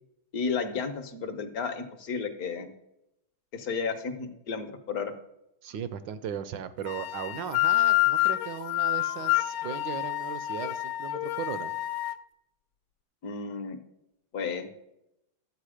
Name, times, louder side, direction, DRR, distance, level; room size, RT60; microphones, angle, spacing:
voice 1, 0.3-2.7 3.5-5.1 13.2-13.8 14.3-14.7, left 5 dB, 55° left, 7 dB, 1.1 m, -32 dB
voice 2, 5.6-11.7, right 8 dB, 75° right, 13 dB, 1.2 m, -37 dB
sound 1, 6.9-12.2, left 17 dB, 80° left, 1.4 m, -28 dB
12.5 x 8.2 x 4.9 m, 0.86 s
omnidirectional pair, 2.3 m